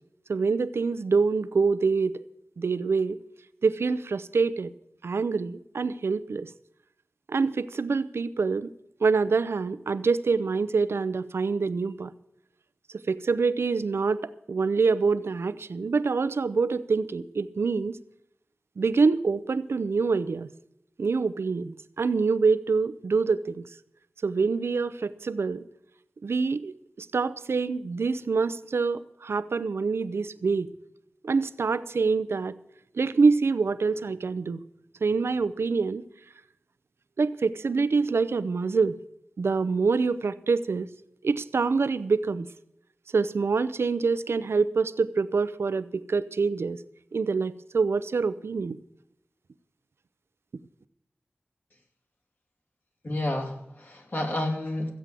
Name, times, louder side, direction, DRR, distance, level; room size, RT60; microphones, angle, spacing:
voice 1, 0.3-2.2 2.6-3.2 3.6-4.7 5.0-6.5 7.3-8.7 9.0-12.1 13.1-18.0 18.8-20.5 21.0-23.6 24.2-25.7 26.2-30.7 31.2-32.5 32.9-34.6 35.0-36.0 37.2-38.9 39.4-40.9 41.2-42.4 43.1-46.8 47.1-48.8, right 4 dB, 85° right, 15 dB, 0.6 m, -25 dB
voice 2, 53.0-54.9, left 1 dB, 50° left, 1 dB, 2.8 m, -30 dB
14.5 x 8.3 x 7.5 m, 0.81 s
wide cardioid pair, 60°, 4 cm